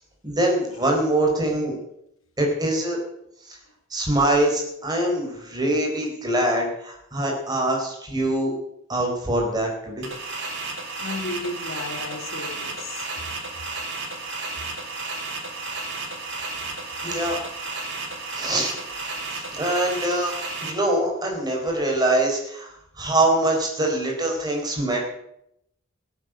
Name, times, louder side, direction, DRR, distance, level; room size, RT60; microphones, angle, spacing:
voice 1, 0.2-1.8 2.4-3.0 3.5-3.6 3.9-8.5 8.9-10.1 17.0-17.4 18.3-18.8 19.3-20.3 20.6-22.7 23.0-25.1, right 1 dB, 20° right, 4.2 m, -23 dB
sound 1, 10.0-20.7, right 3 dB, 60° right, 4.3 m, -33 dB
voice 2, 11.0-13.2, left 2 dB, 80° left, 1.7 m, -34 dB
17.5 x 9.1 x 7.6 m
head